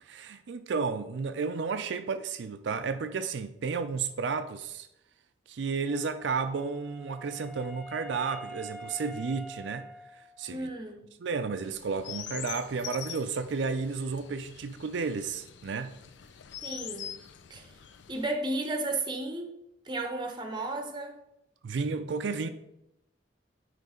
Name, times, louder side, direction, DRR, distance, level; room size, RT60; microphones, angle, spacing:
voice 1, 0.0-4.9 5.5-10.7 11.2-16.0 21.6-22.5, right 5 dB, 80° right, 0.4 m, -32 dB
Wind instrument woodwind instrument, 5.9-10.7, equal, 5° left, 2.6 m, -46 dB
voice 2, 10.5-11.0 16.6-17.1 17.5-17.7 18.1-19.6 19.9-21.2, right 2 dB, 25° right, 0.9 m, -33 dB
Chirp tweet, 11.6-18.3, left 10 dB, 80° left, 0.5 m, -44 dB
9.2 x 3.2 x 5.0 m
head